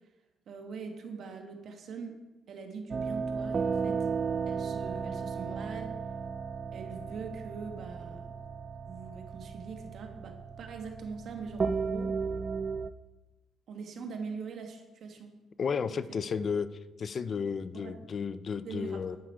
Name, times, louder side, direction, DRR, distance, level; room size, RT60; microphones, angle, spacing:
voice 1, 0.5-2.2 2.5-4.1 4.5-6.0 6.7-8.3 8.9-12.1 13.7-15.4 15.9-16.2 17.7-17.9 18.6-19.2, right 5 dB, 65° right, 4 dB, 1.7 m, -42 dB
sound 1, 2.9-12.9, right 5 dB, 40° right, 0.4 m, -34 dB
voice 2, 15.6-16.7 17.0-19.2, left 6 dB, 50° left, 14 dB, 0.5 m, -33 dB
10.0 x 9.4 x 4.7 m, 1.1 s
cardioid pair, 90°, 0 cm